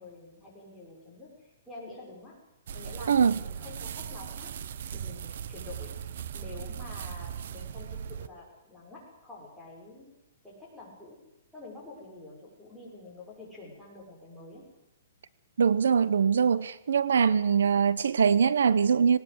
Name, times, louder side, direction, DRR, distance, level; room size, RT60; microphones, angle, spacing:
voice 1, 0.0-2.4 2.7-4.5 4.9-6.0 6.3-10.1 10.4-11.2 11.5-14.7, left 3 dB, ahead, 6.0 m, -47 dB
sound 1, 2.7-8.3, right 8 dB, 55° right, 1.0 m, -39 dB
voice 2, 3.1-3.4 15.6-19.2, right 6 dB, 80° right, 0.9 m, -23 dB
19.5 x 18.5 x 8.0 m
hypercardioid pair, 170°, 0 cm